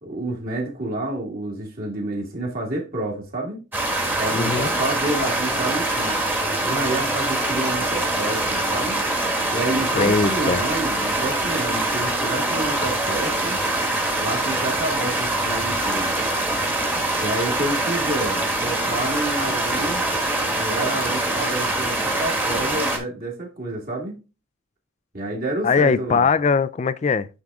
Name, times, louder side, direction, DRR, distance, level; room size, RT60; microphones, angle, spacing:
voice 1, 0.0-3.6 4.2-6.2 6.6-9.0 9.5-13.6 14.2-16.2 17.2-20.0 20.6-24.1 25.1-26.3, right 2 dB, 45° right, 2.0 m, -29 dB
sound 1, 3.7-23.0, right 2 dB, 10° right, 1.3 m, -24 dB
voice 2, 4.3-4.7 9.9-10.7 25.6-27.3, left 5 dB, 35° left, 0.3 m, -20 dB
9.3 x 3.6 x 3.6 m
head